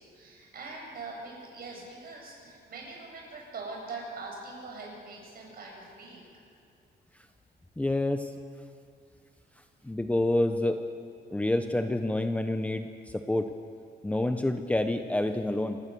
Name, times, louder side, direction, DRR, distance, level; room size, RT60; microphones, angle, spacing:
voice 1, 0.0-6.2, right 3 dB, 55° right, -1 dB, 7.9 m, -42 dB
voice 2, 7.8-8.3 9.8-10.8 11.3-13.5 14.0-15.8, left 1 dB, 5° left, 6 dB, 0.8 m, -28 dB
28.0 x 17.5 x 7.0 m, 2.4 s
cardioid pair, 150°, 19 cm